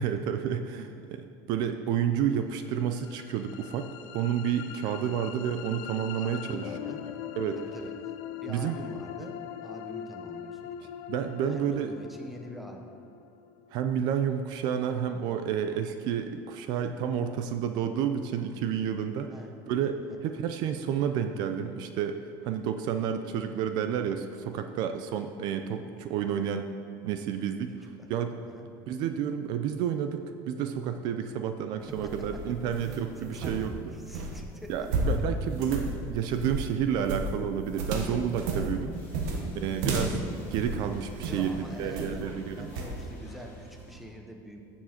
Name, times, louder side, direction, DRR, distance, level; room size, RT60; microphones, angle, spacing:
voice 1, 0.0-6.7 7.4-7.6 8.5-8.8 11.1-11.9 13.7-19.3 19.7-26.7 27.0-27.7 28.1-28.3 28.9-34.0 34.7-38.9 39.5-40.2 40.5-42.7, right 8 dB, 50° right, 8 dB, 0.5 m, -30 dB
sound 1, 2.7-14.7, left 10 dB, 65° left, 0.6 m, -42 dB
voice 2, 6.2-7.0 7.6-8.1 8.4-10.9 11.5-12.8 19.3-19.5 25.1-25.3 27.7-28.1 28.4-28.7 31.9-32.1 33.2-34.7 38.5-39.0 41.2-44.6, equal, ahead, 2 dB, 0.8 m, -45 dB
sound 2, 31.8-41.5 41.9-42.3 42.7-43.0, right 2 dB, 85° right, 1.5 m, -33 dB
sound 3, 38.9-44.0, equal, 25° left, 2.9 m, -51 dB
15.5 x 7.3 x 4.3 m, 2.6 s
cardioid pair, 180°, 10 cm